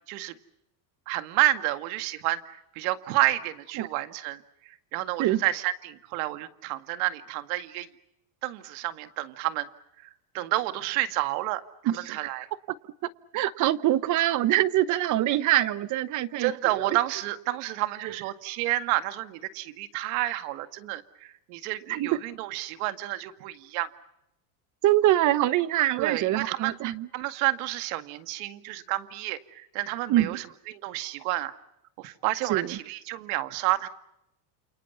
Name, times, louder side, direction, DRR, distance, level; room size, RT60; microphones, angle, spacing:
voice 1, 1.1-7.9 8.4-9.7 10.0-10.1 10.3-12.5 16.4-23.9 26.0-26.8 27.1-31.5 32.0-33.9, right 16 dB, 70° right, 10 dB, 2.1 m, -30 dB
voice 2, 11.9-12.3 13.3-17.0 18.0-18.1 21.9-22.1 24.8-27.1 30.1-30.4 32.5-32.7, right 14 dB, 40° right, 16 dB, 1.0 m, -24 dB
29.0 x 28.5 x 5.7 m, 0.84 s
supercardioid pair, 145°, 46 cm